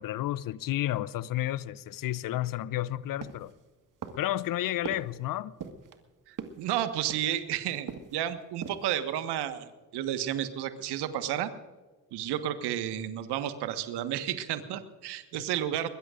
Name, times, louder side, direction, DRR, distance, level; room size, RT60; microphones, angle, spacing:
voice 1, 0.0-3.5 4.2-5.5 15.3-15.4, left 14 dB, 50° left, 0.7 m, -31 dB
sound 1, 3.2-3.6 4.0-4.4 4.8-5.2 5.6-6.0 6.4-6.7 7.1-7.5 7.9-8.2 8.5-8.9 9.3-9.4, right 6 dB, 45° right, 1.8 m, -41 dB
voice 2, 6.3-11.5 12.1-15.9, right 11 dB, 65° right, 1.6 m, -32 dB
22.5 x 22.0 x 2.6 m
hypercardioid pair, 50°, 44 cm